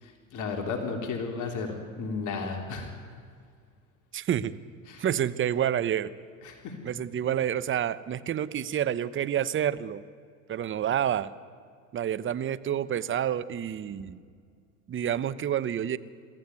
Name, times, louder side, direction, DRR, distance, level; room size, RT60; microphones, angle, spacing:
voice 1, 0.0-2.9 4.9-5.0 6.4-6.8, left 4 dB, 45° left, 3 dB, 3.5 m, -34 dB
voice 2, 4.1-4.6 5.0-6.1 6.8-10.0 10.5-11.3 11.9-14.2 14.9-16.0, right 10 dB, 30° right, 15 dB, 0.9 m, -28 dB
22.5 x 15.0 x 9.5 m, 2.1 s
hypercardioid pair, 90°, 42 cm